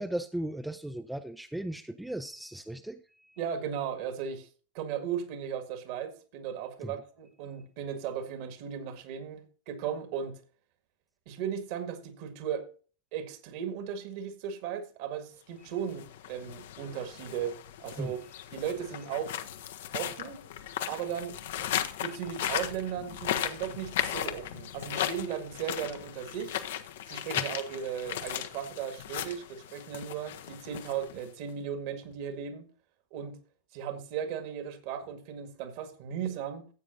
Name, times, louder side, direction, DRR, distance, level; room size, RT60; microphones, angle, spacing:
voice 1, 0.0-3.4 6.8-7.0 18.0-18.1 27.4-27.5, right 1 dB, 5° right, 0.5 m, -37 dB
voice 2, 3.4-4.5 4.7-10.4 11.3-12.7 13.1-18.2 18.5-19.4 19.9-20.4 20.9-21.4 22.0-26.6 27.1-32.7 33.1-33.4 33.7-36.7, right 8 dB, 45° right, 1.8 m, -36 dB
sound 1, 15.8-31.5, left 11 dB, 55° left, 0.8 m, -36 dB
15.0 x 8.4 x 2.6 m
figure-of-eight pair, 90°, 0 cm